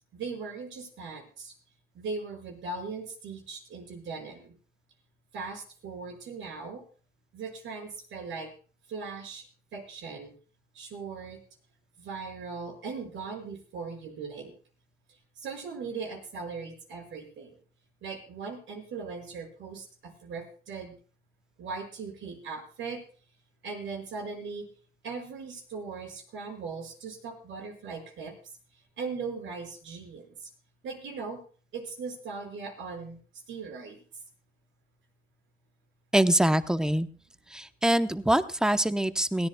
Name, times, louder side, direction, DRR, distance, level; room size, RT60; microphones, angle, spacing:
voice 1, 0.1-1.5 1.9-4.5 5.3-6.8 7.3-8.5 8.9-9.4 9.7-10.3 10.7-11.4 12.0-14.6 15.4-17.6 18.0-20.9 21.6-23.0 23.6-24.7 25.0-28.3 29.0-30.5 30.8-31.4 31.7-33.2 33.5-34.0, right 4 dB, 75° right, 2 dB, 5.5 m, -39 dB
voice 2, 36.1-37.1 37.5-39.5, right 1 dB, 5° right, 10 dB, 0.9 m, -24 dB
21.0 x 16.5 x 2.3 m, 0.39 s
cardioid pair, 90°, 20 cm